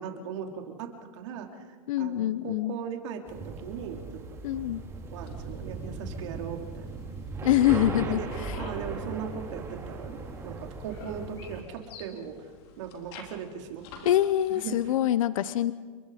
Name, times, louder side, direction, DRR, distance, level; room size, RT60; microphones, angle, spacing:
voice 1, 0.0-1.5 2.0-4.2 5.1-6.9 8.0-8.3 8.6-12.4 12.8-14.1 14.5-14.8, right 7 dB, 55° right, 3 dB, 3.6 m, -38 dB
voice 2, 1.9-2.8 4.4-4.8 7.4-8.5 14.0-15.7, left 12 dB, 70° left, 15 dB, 0.8 m, -25 dB
sound 1, 3.3-11.6, right 3 dB, 15° right, 3.0 m, -38 dB
sound 2, 5.1-15.0, left 6 dB, 50° left, 3.6 m, -52 dB
30.0 x 23.0 x 5.1 m, 1.5 s
supercardioid pair, 155°, 18 cm